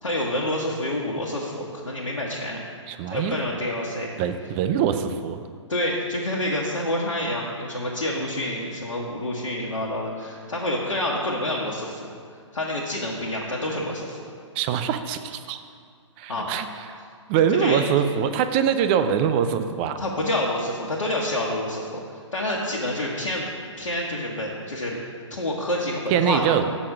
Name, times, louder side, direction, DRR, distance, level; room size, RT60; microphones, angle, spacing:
voice 1, 0.0-2.6 3.1-4.1 5.7-12.0 12.5-14.2 16.3-16.5 16.9-17.0 17.6-17.8 20.0-22.0 22.3-23.4 23.8-25.0 25.3-26.4, left 1 dB, 80° left, -4 dB, 1.2 m, -28 dB
voice 2, 2.9-3.4 4.2-5.4 14.6-15.6 16.2-16.7 16.9-17.0 17.3-20.0 26.1-26.7, right 8 dB, 20° right, 9 dB, 0.3 m, -23 dB
6.2 x 6.0 x 6.4 m, 2.1 s
figure-of-eight pair, 130°, 16 cm